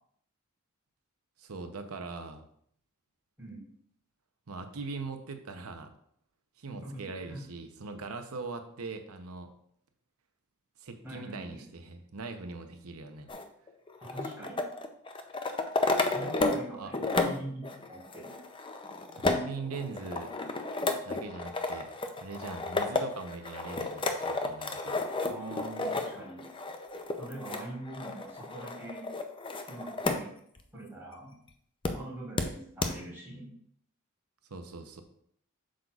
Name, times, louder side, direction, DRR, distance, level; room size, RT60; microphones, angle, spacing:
voice 1, 1.4-2.4 4.5-5.9 6.6-9.5 10.8-13.3 16.8-16.9 19.2-20.3 21.0-21.9 22.2-25.0 34.5-35.0, right 4 dB, 80° right, 7 dB, 0.8 m, -41 dB
voice 2, 6.7-7.4 11.0-11.6 14.1-14.6 16.1-18.3 25.3-26.4 27.2-29.0 29.7-30.3 30.7-31.3 31.9-33.5, right 1 dB, 10° right, -6 dB, 2.9 m, -43 dB
sound 1, 13.3-16.7 16.9-30.2 30.6-30.7 31.8-31.9 32.4-32.5 32.8-32.9, left 2 dB, 25° left, 0.5 m, -32 dB
7.8 x 6.4 x 2.4 m, 0.66 s
head